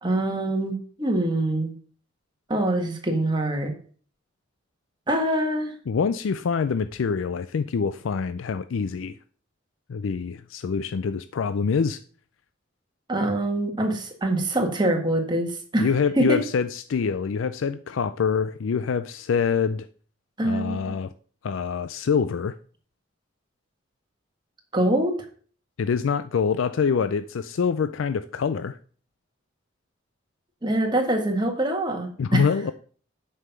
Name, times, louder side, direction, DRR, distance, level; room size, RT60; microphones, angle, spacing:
voice 1, 0.0-1.7 2.5-3.7 5.1-5.7 13.1-15.9 16.2-16.4 20.4-20.9 24.7-25.1 30.6-32.4, right 1 dB, 25° right, 1.6 m, -24 dB
voice 2, 5.9-9.2 9.9-12.0 15.8-19.9 20.4-21.1 21.4-22.6 25.8-28.8 32.2-32.7, left 6 dB, 85° left, 0.4 m, -25 dB
8.1 x 5.7 x 5.7 m
head